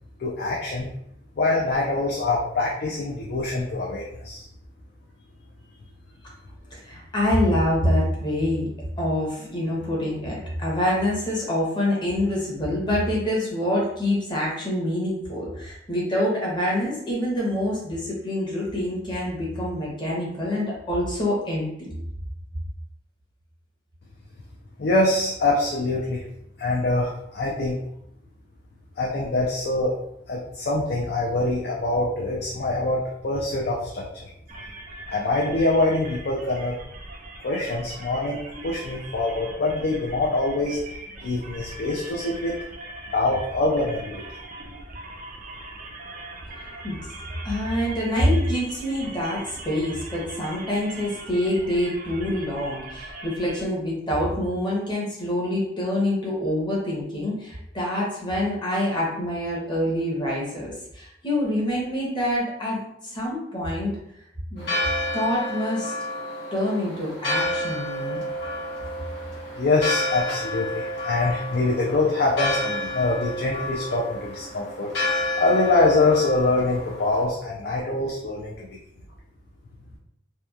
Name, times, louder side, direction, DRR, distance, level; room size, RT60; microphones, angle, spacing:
voice 1, 0.2-0.9 1.4-4.4 24.8-26.2 26.6-27.8 29.0-29.9 30.3-34.0 35.1-36.7 37.4-40.8 41.2-42.6 43.1-44.2 69.6-74.9 75.4-78.7, left 2 dB, 60° left, -3 dB, 0.4 m, -24 dB
voice 2, 6.7-8.7 9.0-21.9 46.8-47.0 47.4-63.9 64.5-64.7 65.1-65.9 66.5-68.2, left 1 dB, 25° left, -4 dB, 0.8 m, -26 dB
sound 1, 34.5-53.7, right 2 dB, 45° right, 0.4 m, -41 dB
Church bell, 64.6-77.2, left 1 dB, 80° left, 1.0 m, -30 dB
2.8 x 2.1 x 2.3 m, 0.76 s
head